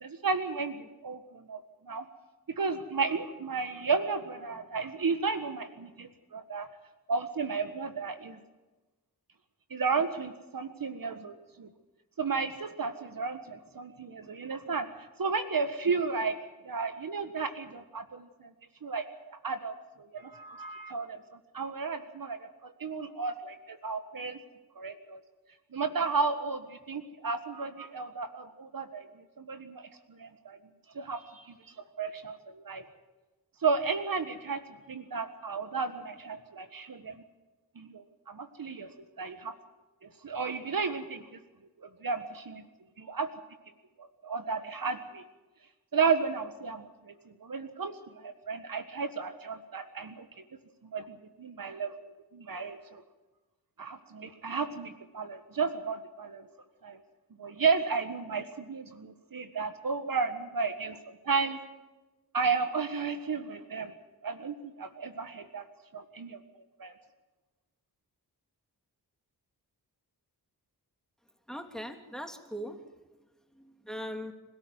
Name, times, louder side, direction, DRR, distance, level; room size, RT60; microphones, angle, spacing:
voice 1, 0.0-1.6 1.8-2.1 2.6-6.7 7.1-8.4 9.7-11.7 12.2-14.9 15.2-16.4 16.6-18.5 18.8-21.2 21.5-24.4 24.8-25.2 25.7-29.1 29.4-30.6 31.0-31.6 32.0-32.9 33.6-34.6 34.9-37.2 37.8-38.9 39.2-39.6 40.0-41.4 42.0-42.6 43.0-43.3 44.0-45.2 45.9-47.1 47.4-50.3 50.9-53.0 53.8-56.4 56.8-57.0 57.4-61.0 61.2-61.6 62.3-63.9 64.2-65.7 65.9-66.4 66.8-66.9, right 5 dB, 55° right, 9 dB, 1.6 m, -33 dB
voice 2, 71.5-72.9 73.5-74.3, equal, ahead, 6 dB, 3.2 m, -40 dB
26.0 x 13.5 x 9.5 m, 1.1 s
cardioid pair, 50°, 39 cm